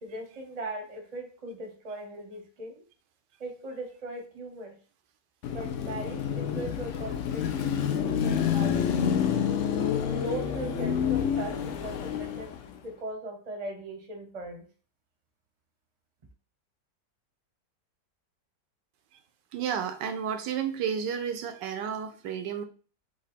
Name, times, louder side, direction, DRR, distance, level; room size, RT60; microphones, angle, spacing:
voice 1, 0.0-2.8 3.4-4.7 5.5-8.9 9.7-12.5 12.8-14.7, right 2 dB, 30° right, 3 dB, 0.8 m, -39 dB
Car passing by / Traffic noise roadway noise / Engine, 5.4-12.8, left 8 dB, 75° left, 0.7 m, -28 dB
voice 2, 19.5-22.6, right 8 dB, 80° right, 8 dB, 1.2 m, -31 dB
5.2 x 2.4 x 4.1 m, 0.39 s
omnidirectional pair, 1.9 m